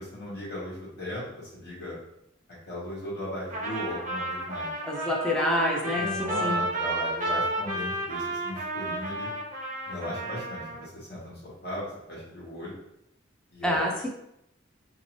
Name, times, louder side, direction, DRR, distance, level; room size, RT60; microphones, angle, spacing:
voice 1, 0.0-2.0 2.7-4.7 5.9-9.3 9.8-12.8 13.5-13.8, left 1 dB, 55° left, -6 dB, 1.3 m, -37 dB
Trumpet, 3.5-10.9, right 2 dB, 40° right, 0.6 m, -32 dB
voice 2, 4.8-6.6 13.6-14.1, left 1 dB, 5° left, -2 dB, 0.5 m, -27 dB
2.7 x 2.6 x 3.0 m, 0.80 s
head